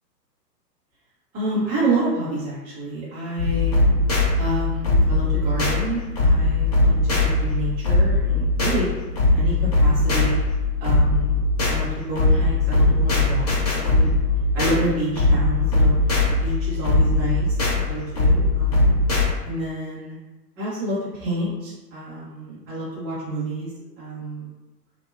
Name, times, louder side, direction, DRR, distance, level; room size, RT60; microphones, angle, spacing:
voice 1, 1.3-3.7 4.4-8.9 9.3-10.3 10.8-11.4 11.7-14.2 14.5-15.9 16.4-17.5 17.9-18.9 19.4-20.2 20.6-23.7 24.0-24.4, right 2 dB, 20° right, -10 dB, 0.7 m, -28 dB
sound 1, 3.4-19.3, left 2 dB, 30° left, 0.4 m, -20 dB
2.5 x 2.2 x 2.3 m, 1.1 s
figure-of-eight pair, 115°, 50 cm